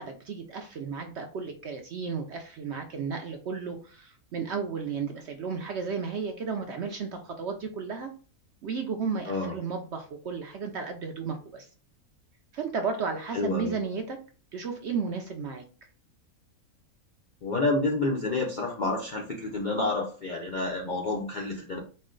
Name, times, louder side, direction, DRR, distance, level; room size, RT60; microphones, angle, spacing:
voice 1, 0.0-8.1 8.6-11.7 12.5-14.2 14.5-15.6, right 5 dB, 65° right, 3 dB, 0.7 m, -33 dB
voice 2, 13.3-13.8 17.4-21.8, left 2 dB, 60° left, -1 dB, 0.5 m, -29 dB
4.3 x 2.1 x 3.7 m, 0.37 s
omnidirectional pair, 1.5 m